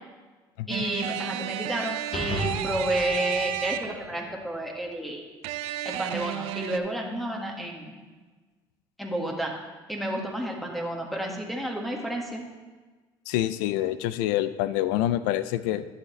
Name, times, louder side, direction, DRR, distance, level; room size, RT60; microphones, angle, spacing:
voice 1, 0.7-5.2 5.8-8.0 9.0-9.5 9.9-12.4, right 1 dB, ahead, 0 dB, 1.6 m, -31 dB
sound 1, 0.7-4.2 5.4-6.8, right 12 dB, 75° right, 0.5 m, -32 dB
sound 2, 2.1-4.6, right 1 dB, 65° left, 1.8 m, -36 dB
voice 2, 13.3-15.8, left 13 dB, 90° left, 14 dB, 0.4 m, -26 dB
11.0 x 6.6 x 3.2 m, 1.3 s
supercardioid pair, 75°, 10 cm